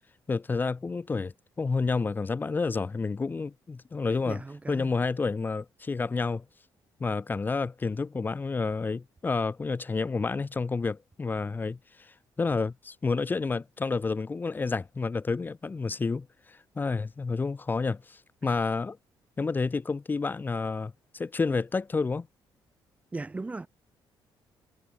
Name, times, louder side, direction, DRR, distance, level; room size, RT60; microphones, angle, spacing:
voice 1, 0.3-4.4 4.7-6.4 7.0-19.0 19.4-22.3, left 4 dB, 20° left, 2.6 m, -30 dB
voice 2, 4.2-4.9 18.4-18.5 23.1-23.7, right 3 dB, 15° right, 2.8 m, -37 dB
cardioid pair, 155°, 9 cm